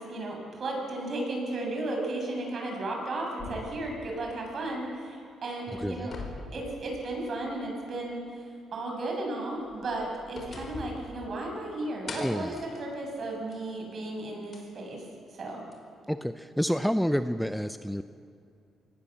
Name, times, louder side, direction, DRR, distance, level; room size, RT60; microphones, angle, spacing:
voice 1, 0.0-6.1 6.5-15.0 15.3-15.6, right 2 dB, 50° right, 1 dB, 7.2 m, -34 dB
sound 1, 3.4-5.1 5.5-7.5 7.9-8.0 9.6-11.7 12.1-13.7 14.5-14.6 15.7-15.8, left 3 dB, 45° left, 4.7 m, -43 dB
voice 2, 5.8-6.1 12.2-12.6 16.1-18.0, equal, ahead, 10 dB, 0.7 m, -29 dB
25.5 x 19.0 x 7.4 m, 2.4 s
cardioid pair, 90°, 0 cm